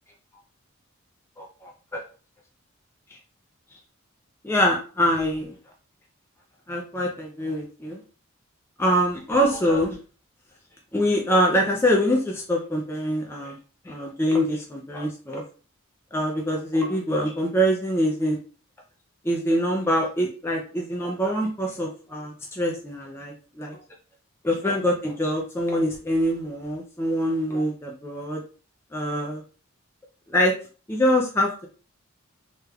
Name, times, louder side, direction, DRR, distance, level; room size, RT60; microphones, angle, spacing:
voice 1, 1.4-2.0 3.1-3.2 4.4-5.5 6.7-8.0 8.8-10.0 10.9-13.6 13.9-15.4 16.1-18.4 19.2-23.8 24.4-28.4 28.9-29.4 30.3-30.5 30.9-31.7, equal, 10° left, -1 dB, 0.4 m, -24 dB
3.3 x 3.0 x 2.3 m, 0.38 s
head